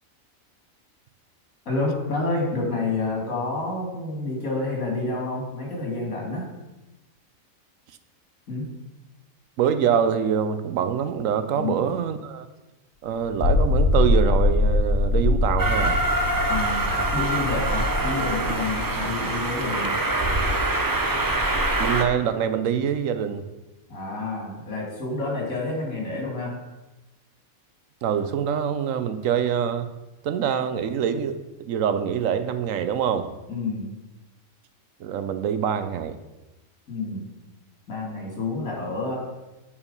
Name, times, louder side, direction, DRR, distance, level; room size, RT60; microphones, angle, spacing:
voice 1, 1.7-6.5 8.5-8.7 11.5-11.9 16.5-19.9 23.9-26.6 33.5-33.9 36.9-37.3 37.9-39.2, left 3 dB, 85° left, -1 dB, 2.6 m, -29 dB
voice 2, 9.6-12.5 13.0-16.0 21.8-23.4 28.0-29.9 30.2-33.3 35.0-36.2, right 8 dB, 75° right, 10 dB, 1.0 m, -25 dB
sound 1, 13.2-19.7, left 2 dB, 45° left, 1.4 m, -23 dB
Train, 15.6-22.0, right 2 dB, 25° right, 0.5 m, -24 dB
8.7 x 4.7 x 5.2 m, 1.0 s
omnidirectional pair, 1.4 m